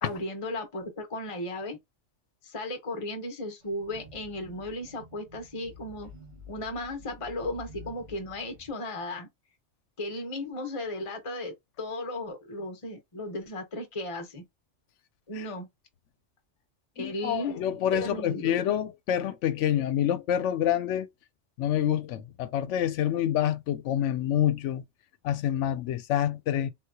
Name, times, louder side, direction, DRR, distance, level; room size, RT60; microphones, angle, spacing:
voice 1, 0.0-1.8 2.4-6.1 6.5-9.3 10.0-14.4 15.3-15.7 17.0-17.6 17.9-18.5, left 1 dB, 30° left, 0.9 m, -35 dB
sound 1, 3.6-8.7, left 3 dB, 65° right, 1.8 m, -49 dB
voice 2, 17.0-21.1 21.6-24.8 25.2-26.7, left 10 dB, 80° left, 0.9 m, -27 dB
3.7 x 2.9 x 2.2 m
omnidirectional pair, 1.2 m